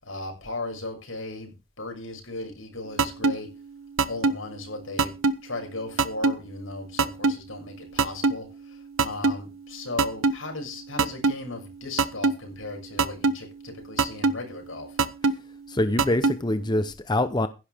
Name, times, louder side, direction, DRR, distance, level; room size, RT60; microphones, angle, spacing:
voice 1, 0.0-3.5 4.0-5.1 5.4-15.0, left 2 dB, 80° left, 6.7 m, -36 dB
sound 1, 3.0-3.3 4.0-4.3 5.0-5.3 6.0-6.3 7.0-7.3 8.0-8.3 9.0-9.3 10.0-10.3 11.0-11.3 12.0-12.3 13.0-13.3 14.0-14.3 15.0-15.3 16.0-16.3, right 4 dB, 80° right, 1.0 m, -20 dB
voice 2, 15.7-17.5, left 1 dB, 20° left, 0.7 m, -24 dB
16.0 x 11.5 x 3.5 m
head